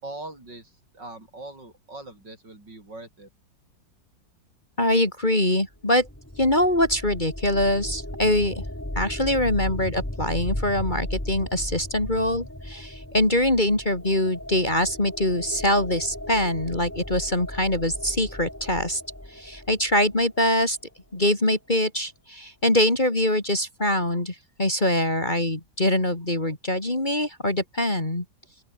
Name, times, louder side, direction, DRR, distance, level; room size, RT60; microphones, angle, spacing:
voice 1, 0.0-3.3, right 2 dB, 65° right, 8.7 m, -41 dB
voice 2, 4.8-6.1 6.4-8.6 9.0-19.0 19.3-20.8 21.1-28.3, left 1 dB, 25° left, 3.6 m, -23 dB
sound 1, 5.7-20.6, left 1 dB, 10° left, 2.7 m, -36 dB
open air
omnidirectional pair, 2.0 m